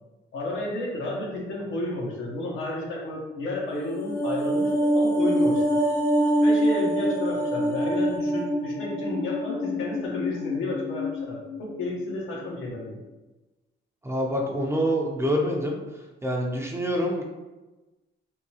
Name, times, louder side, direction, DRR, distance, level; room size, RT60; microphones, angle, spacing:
voice 1, 0.3-5.6 6.4-13.0, left 2 dB, 85° left, -3 dB, 1.0 m, -32 dB
sound 1, 3.7-12.1 12.4-12.6, equal, 50° left, 0.6 m, -25 dB
voice 2, 14.0-15.8 16.2-17.2, equal, 15° right, 0 dB, 0.6 m, -26 dB
3.6 x 2.3 x 2.8 m, 1.1 s
cardioid pair, 90°, 20 cm